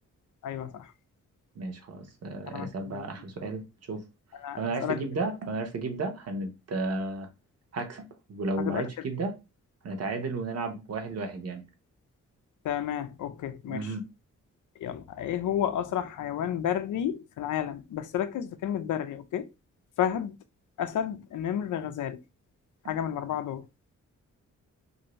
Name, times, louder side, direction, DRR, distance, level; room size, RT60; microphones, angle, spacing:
voice 1, 0.4-0.9 2.5-3.1 4.3-5.0 8.6-9.1 12.6-13.9 14.8-19.5 20.0-20.3 20.8-22.2 22.9-23.7, left 10 dB, 85° left, 0.5 m, -31 dB
voice 2, 1.5-4.0 4.6-7.3 7.7-9.4 9.8-11.6 13.7-14.1, right 3 dB, 55° right, 0.8 m, -33 dB
2.6 x 2.6 x 3.0 m
wide cardioid pair, 145°, 30 cm